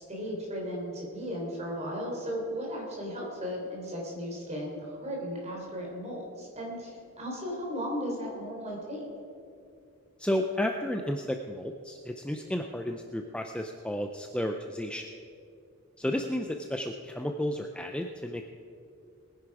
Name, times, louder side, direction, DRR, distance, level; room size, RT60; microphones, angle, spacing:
voice 1, 0.0-9.1 16.0-16.2, equal, 30° right, -1 dB, 3.8 m, -36 dB
voice 2, 10.2-15.0 16.0-18.4, left 1 dB, 5° left, 4 dB, 0.5 m, -32 dB
21.0 x 10.0 x 4.8 m, 2.5 s
head